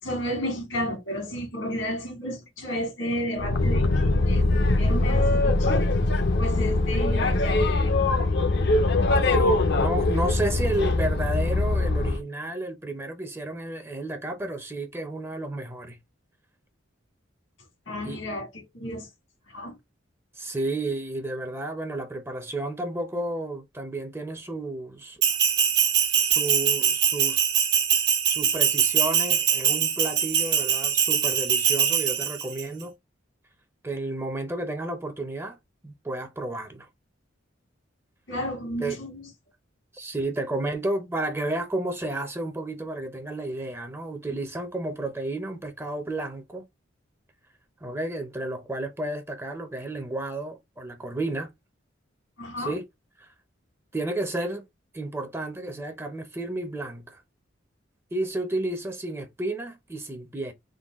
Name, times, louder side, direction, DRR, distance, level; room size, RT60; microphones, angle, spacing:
voice 1, 0.0-5.9 6.4-8.0 17.9-19.1 19.5-19.8 38.3-39.2 52.4-52.8, equal, 80° left, 1.8 m, -32 dB
Boat Water vehicle, 3.4-12.2, left 2 dB, 60° left, 0.6 m, -22 dB
voice 2, 9.3-16.0 18.0-18.2 20.4-25.2 26.2-27.4 28.3-32.9 33.8-35.6 35.8-36.9 38.8-39.0 39.9-46.6 47.8-51.5 52.6-52.9 53.2-53.3 53.9-54.7 54.9-57.2 58.1-60.5, right 2 dB, 15° right, 0.6 m, -32 dB
Bell, 25.2-32.6, right 8 dB, 55° right, 1.2 m, -23 dB
3.8 x 2.2 x 3.5 m
head